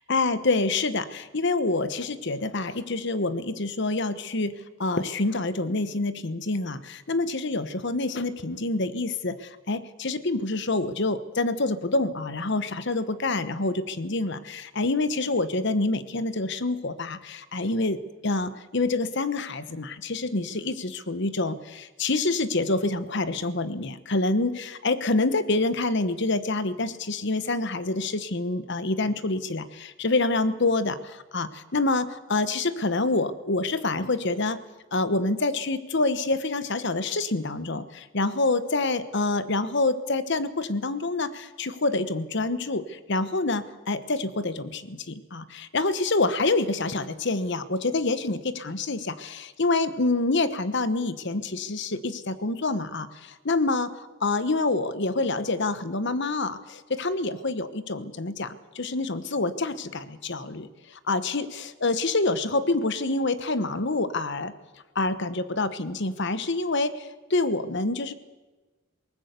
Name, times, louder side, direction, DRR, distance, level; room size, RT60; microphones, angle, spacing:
voice 1, 0.1-4.5 4.8-18.0 18.2-34.6 34.9-64.5 64.9-68.1, left 2 dB, 55° left, 13 dB, 1.2 m, -27 dB
20.5 x 19.0 x 8.2 m, 1.2 s
head